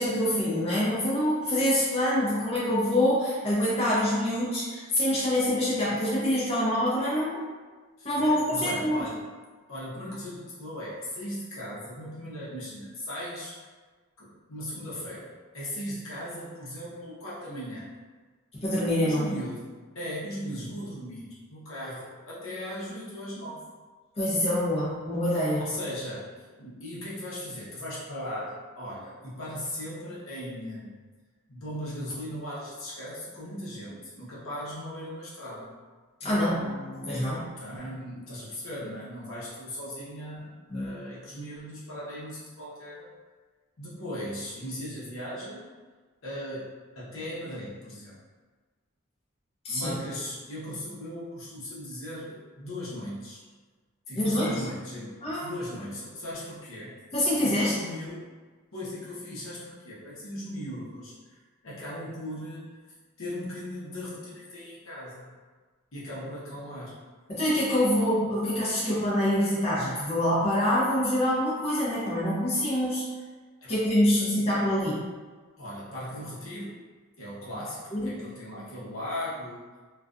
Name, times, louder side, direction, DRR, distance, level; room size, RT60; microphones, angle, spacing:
voice 1, 0.0-7.4 8.0-9.0 18.5-19.3 24.2-25.6 36.2-37.5 40.7-40.9 49.6-50.0 54.1-54.6 55.2-55.5 57.1-57.7 67.3-73.0 73.7-75.0 77.9-78.1, left 1 dB, 30° left, -9 dB, 0.7 m, -25 dB
voice 2, 8.0-9.2 9.7-13.5 14.2-17.9 19.0-23.6 25.6-26.3 26.6-31.0 31.5-35.7 37.6-43.1 43.8-45.6 46.2-48.2 49.7-53.4 54.1-55.1 55.4-57.0 57.4-58.3 58.7-61.3 61.6-62.7 63.2-65.3 65.9-66.9 73.6-73.7 74.1-74.5 75.6-76.8 77.2-77.8 78.0-79.6, equal, 70° left, -8 dB, 0.8 m, -38 dB
2.4 x 2.2 x 2.5 m, 1.4 s
head